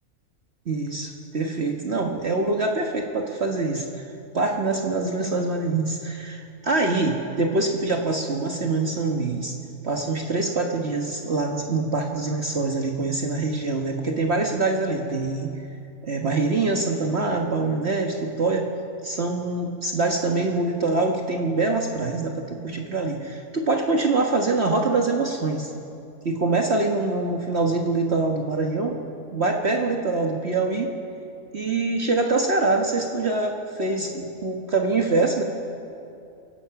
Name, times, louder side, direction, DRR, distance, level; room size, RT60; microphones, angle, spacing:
voice 1, 0.7-4.0 4.3-9.6 9.8-15.5 16.0-18.7 19.0-25.7 26.3-29.0 29.3-30.9 31.5-35.4, right 3 dB, 50° right, 1 dB, 1.6 m, -24 dB
29.0 x 16.5 x 5.9 m, 2.6 s
omnidirectional pair, 1.5 m